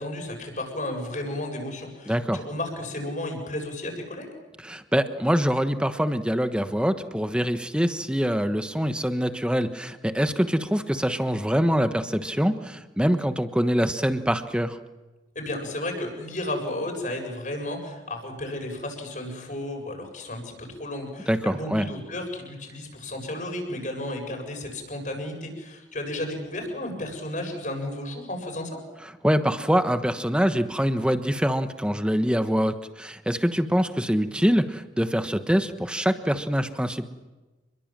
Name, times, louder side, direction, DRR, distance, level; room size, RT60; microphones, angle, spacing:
voice 1, 0.0-4.3 15.3-28.8, left 1 dB, 45° left, 2 dB, 7.5 m, -33 dB
voice 2, 2.1-2.4 4.6-14.8 21.3-21.9 29.2-37.1, equal, 5° right, 8 dB, 1.2 m, -24 dB
29.0 x 22.0 x 7.6 m, 1.2 s
head